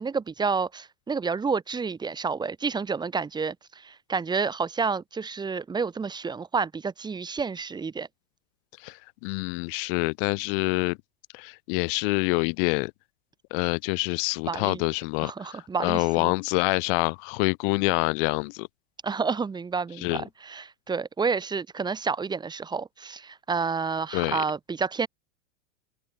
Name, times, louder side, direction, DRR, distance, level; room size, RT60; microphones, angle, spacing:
voice 1, 0.0-8.1 14.5-14.8 15.2-16.3 19.0-25.1, right 5 dB, 10° right, 4.0 m, -29 dB
voice 2, 9.2-11.0 11.3-12.9 13.5-18.7 20.0-20.2 24.1-24.4, left 33 dB, 50° left, 2.7 m, -26 dB
supercardioid pair, 155°, 35 cm